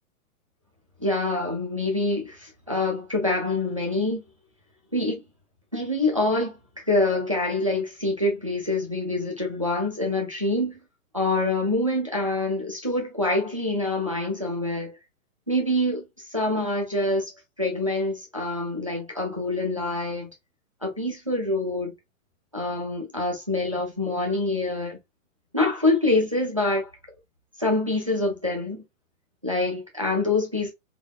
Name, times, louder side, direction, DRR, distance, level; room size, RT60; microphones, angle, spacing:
voice 1, 1.0-4.2 4.9-5.2 5.7-6.6 6.9-10.8 11.1-15.0 15.5-16.0 16.3-17.3 17.6-20.3 20.8-21.9 22.5-25.0 25.5-26.9 27.6-28.8 29.4-30.7, left 2 dB, 25° right, 0.3 m, -25 dB
3.3 x 2.4 x 2.3 m
hypercardioid pair, 175°, 41 cm